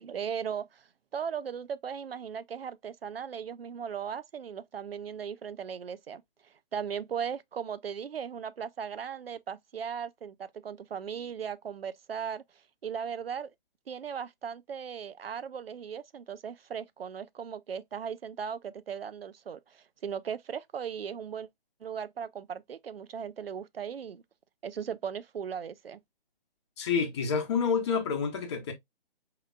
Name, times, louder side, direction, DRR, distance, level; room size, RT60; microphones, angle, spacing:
voice 1, 0.0-12.4 12.8-13.5 13.9-21.5 21.8-24.2 24.6-26.0, right 7 dB, 80° right, 0.5 m, -37 dB
voice 2, 26.8-28.7, left 6 dB, 30° left, 0.8 m, -28 dB
4.8 x 2.9 x 2.3 m
figure-of-eight pair, 140°, 29 cm